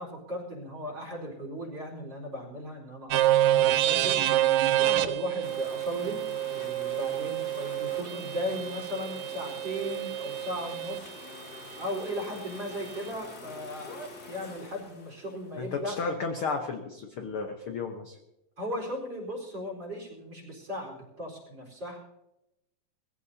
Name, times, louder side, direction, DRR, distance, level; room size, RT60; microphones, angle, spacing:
voice 1, 0.0-4.2 4.8-6.3 6.5-11.2 11.8-14.0 14.3-16.0 18.6-22.0, equal, 30° right, 0 dB, 4.7 m, -37 dB
sound 1, 3.1-11.0, right 13 dB, 80° right, 2.3 m, -27 dB
sound 2, 5.4-15.9, left 2 dB, 35° left, 1.8 m, -46 dB
voice 2, 15.6-18.2, left 4 dB, 70° left, 4 dB, 1.3 m, -33 dB
21.5 x 16.0 x 2.8 m, 0.88 s
omnidirectional pair, 3.9 m